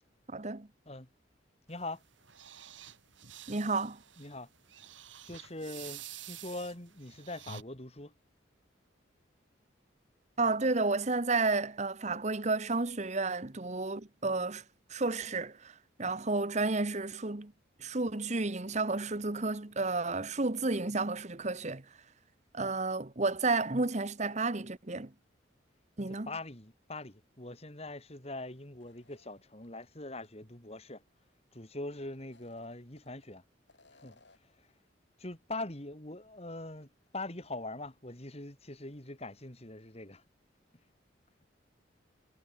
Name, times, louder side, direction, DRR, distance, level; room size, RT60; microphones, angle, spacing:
voice 1, 0.3-0.7 3.5-4.0 10.4-14.6 14.9-17.5 17.8-21.8 22.5-25.1 26.0-26.3, right 3 dB, 35° right, 1.2 m, -31 dB
voice 2, 1.7-2.0 4.2-4.5 5.2-8.1 26.1-31.0 31.5-33.4 33.9-34.2 35.2-36.9 37.1-40.2, left 2 dB, 35° left, 3.0 m, -42 dB
sound 1, 1.7-7.6, right 9 dB, 85° right, 5.6 m, -49 dB
sound 2, 28.8-29.9 30.2-30.3 32.2-33.3 33.7-34.6, left 3 dB, 65° left, 7.6 m, -63 dB
head